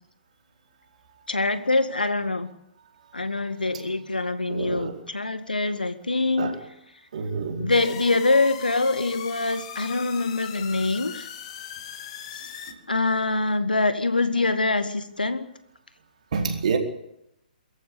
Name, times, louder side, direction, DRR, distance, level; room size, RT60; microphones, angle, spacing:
voice 1, 1.3-2.5 3.1-6.6 7.6-11.3 12.3-12.4 12.9-15.5, left 3 dB, 80° left, 11 dB, 1.9 m, -24 dB
voice 2, 4.5-5.0 6.4-6.6 7.1-7.7 12.7-12.8 16.3-16.8, right 5 dB, 50° right, 3 dB, 4.4 m, -28 dB
sound 1, 7.7-12.7, left 8 dB, 40° left, 2.3 m, -39 dB
23.0 x 14.5 x 8.7 m, 0.80 s
figure-of-eight pair, 130°, 5 cm